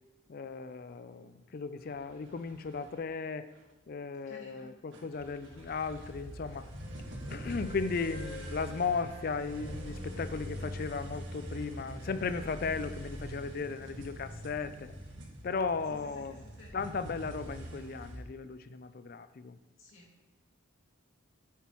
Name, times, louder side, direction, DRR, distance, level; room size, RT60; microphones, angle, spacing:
voice 1, 0.3-3.5 3.9-6.7 7.3-14.9 15.4-16.4 16.7-19.6, left 4 dB, 45° left, 12 dB, 0.4 m, -36 dB
sound 1, 1.8-2.9 3.6-3.7 4.9-18.2, equal, 65° right, 1.4 m, -44 dB
voice 2, 4.3-4.8 15.9-16.8 19.8-20.3, left 2 dB, 75° left, -3 dB, 2.2 m, -54 dB
Wind instrument woodwind instrument, 6.4-10.6, right 1 dB, 60° left, 2.9 m, -52 dB
9.0 x 6.9 x 3.0 m, 1.1 s
head